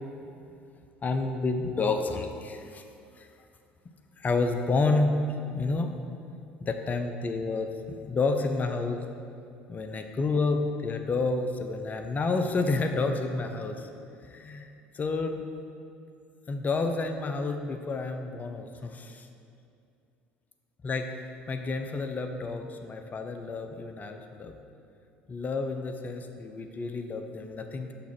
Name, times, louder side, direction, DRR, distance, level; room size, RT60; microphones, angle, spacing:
voice 1, 1.0-2.8 3.2-3.3 4.2-5.1 5.5-5.9 6.6-7.7 8.1-9.0 9.7-13.9 14.2-15.4 16.5-19.3 20.8-24.5 25.3-27.9, left 3 dB, 30° left, 6 dB, 0.5 m, -30 dB
5.8 x 3.6 x 5.8 m, 2.6 s
hypercardioid pair, 60°, 5 cm